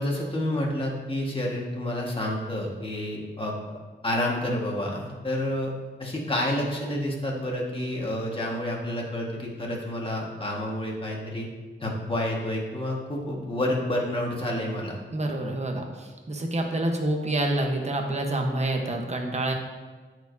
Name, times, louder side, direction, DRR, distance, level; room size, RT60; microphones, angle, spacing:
voice 1, 0.0-3.5 4.0-5.7 6.0-11.5 11.8-15.0, left 1 dB, 25° left, -2 dB, 1.6 m, -29 dB
voice 2, 15.1-19.5, right 1 dB, 35° right, 2 dB, 1.0 m, -27 dB
13.5 x 4.8 x 2.7 m, 1.4 s
wide cardioid pair, 130°, 20 cm